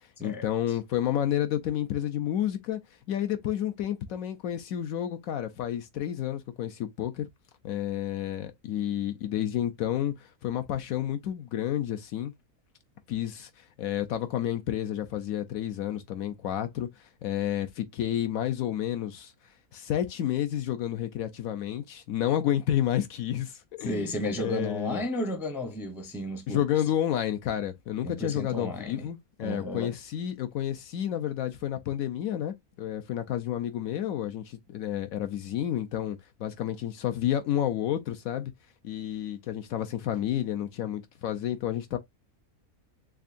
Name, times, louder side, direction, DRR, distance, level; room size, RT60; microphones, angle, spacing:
voice 1, 0.2-2.8 3.1-7.3 7.6-12.3 13.1-16.9 17.2-19.3 19.7-25.0 26.5-38.5 38.8-42.0, left 11 dB, 70° left, 0.9 m, -30 dB
voice 2, 23.8-26.6 28.0-29.1 29.4-29.9, left 1 dB, ahead, 0.5 m, -33 dB
3.7 x 3.4 x 2.5 m
omnidirectional pair, 1.6 m